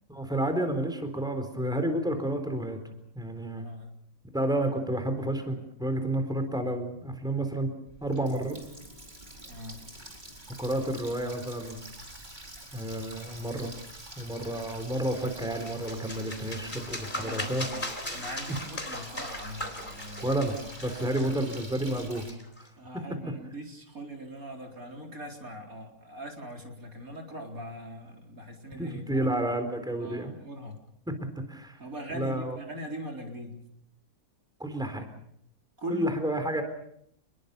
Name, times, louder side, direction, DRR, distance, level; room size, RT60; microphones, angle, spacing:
voice 1, 0.1-2.8 3.1-3.7 4.3-7.7 8.0-8.6 10.6-11.8 12.7-13.7 14.2-17.7 20.2-22.7 22.9-23.0 28.8-30.4 31.1-31.8 32.1-32.6 34.6-35.1 35.9-36.6, right 1 dB, ahead, 7 dB, 3.9 m, -30 dB
voice 2, 3.5-3.9 9.4-9.8 17.1-17.8 18.1-20.4 20.8-21.3 22.8-29.3 30.0-30.8 31.8-33.5 35.8-36.1, equal, 65° right, 2 dB, 4.6 m, -41 dB
Water tap faucet, 7.9-22.3, right 1 dB, 30° right, 4.6 m, -47 dB
sound 1, 15.2-22.7, left 1 dB, 30° left, 3.9 m, -39 dB
29.0 x 21.5 x 6.9 m, 0.71 s
omnidirectional pair, 1.6 m